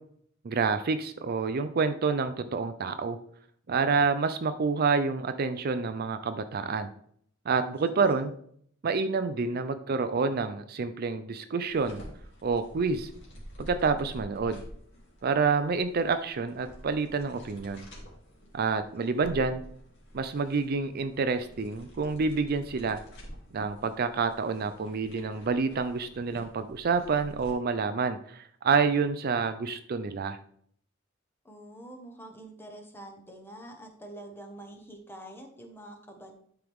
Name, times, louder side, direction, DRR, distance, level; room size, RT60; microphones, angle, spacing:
voice 1, 0.4-3.2 3.7-6.9 7.5-8.3 8.8-12.0 12.4-13.1 13.6-14.6 15.2-17.9 18.5-19.6 20.1-23.0 23.5-30.4, right 4 dB, 50° right, 10 dB, 0.5 m, -28 dB
voice 2, 7.8-8.3 18.9-19.4 31.4-36.4, right 1 dB, 10° left, 3 dB, 1.2 m, -46 dB
sound 1, 11.7-27.5, equal, 60° left, 2.6 m, -48 dB
11.5 x 4.6 x 3.5 m, 0.64 s
head